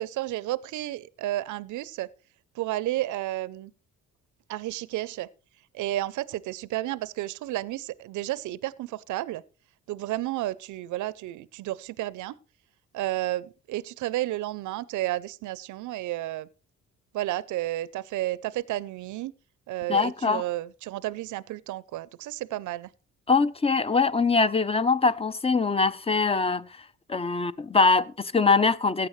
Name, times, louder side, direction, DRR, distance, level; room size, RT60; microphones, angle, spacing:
voice 1, 0.0-2.1 2.5-3.7 4.5-5.3 5.7-9.4 9.9-12.4 12.9-16.5 17.1-19.3 19.7-22.9, right 15 dB, 80° right, 0.6 m, -32 dB
voice 2, 19.9-20.4 23.3-26.7 27.1-29.1, left 4 dB, 20° left, 0.6 m, -23 dB
15.5 x 9.1 x 3.1 m
cardioid pair, 90°, 30 cm